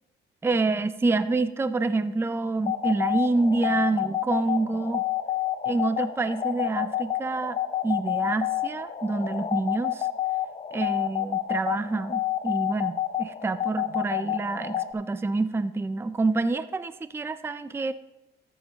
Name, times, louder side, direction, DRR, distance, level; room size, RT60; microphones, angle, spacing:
voice 1, 0.4-5.1 5.7-7.6 7.8-10.1 10.7-17.9, right 3 dB, 10° right, 13 dB, 0.4 m, -27 dB
sound 1, 2.6-14.9, left 12 dB, 35° left, 0.6 m, -29 dB
13.0 x 8.2 x 2.9 m, 0.90 s
cardioid pair, 90°, 20 cm